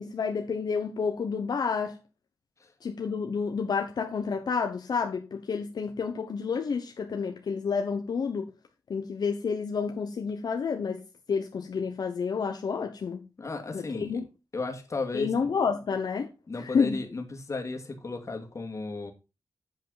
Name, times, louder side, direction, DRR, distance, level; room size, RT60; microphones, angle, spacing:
voice 1, 0.0-2.0 2.8-8.5 8.9-11.0 11.3-13.2 13.7-14.2 15.1-17.0, left 5 dB, 75° left, 1.0 m, -29 dB
voice 2, 13.4-14.2 14.5-15.3 16.5-19.1, left 3 dB, 45° left, 2.2 m, -35 dB
8.0 x 7.5 x 4.0 m
wide cardioid pair, 85°, 7 cm